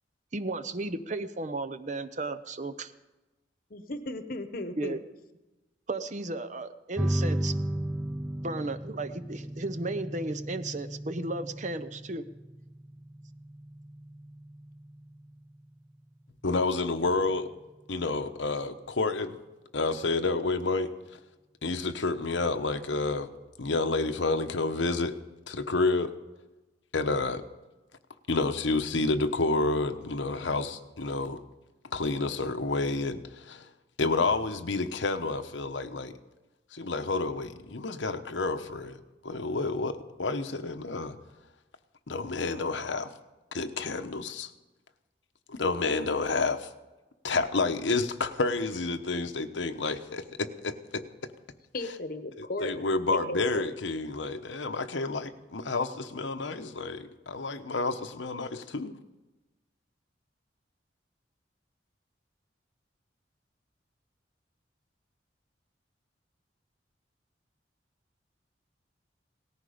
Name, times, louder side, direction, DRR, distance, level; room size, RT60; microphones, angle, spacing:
voice 1, 0.3-2.9 4.8-5.0 5.9-7.5 8.4-12.2, right 2 dB, 40° right, 12 dB, 0.7 m, -34 dB
voice 2, 3.7-5.0 51.7-52.8 53.3-53.7, left 2 dB, 50° left, 10 dB, 1.0 m, -36 dB
sound 1, 7.0-18.0, right 1 dB, 5° right, 0.6 m, -36 dB
voice 3, 16.4-17.5 17.9-19.4 19.7-20.9 21.6-23.3 23.6-25.1 25.5-26.1 26.9-27.4 28.3-31.4 31.9-33.7 34.0-36.1 36.7-41.2 42.1-43.1 43.5-44.5 45.5-46.7 47.2-51.0 52.6-59.0, left 3 dB, 85° left, 8 dB, 1.0 m, -29 dB
18.0 x 14.0 x 5.1 m, 1.1 s
head